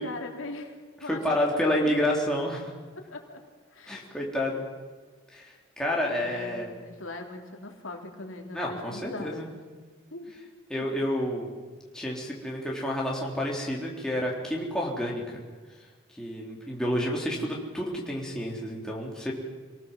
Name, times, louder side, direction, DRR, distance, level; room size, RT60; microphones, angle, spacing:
voice 1, 0.0-1.9 3.0-3.4 3.7-4.1 6.2-9.4 10.1-10.3 10.8-10.9, left 2 dB, 80° left, 2 dB, 3.2 m, -40 dB
voice 2, 1.0-2.7 3.9-4.6 5.3-6.7 8.5-9.5 10.7-11.5 11.9-15.4 16.2-19.3, left 1 dB, 5° left, -3 dB, 3.7 m, -29 dB
27.0 x 18.0 x 7.5 m, 1.4 s
head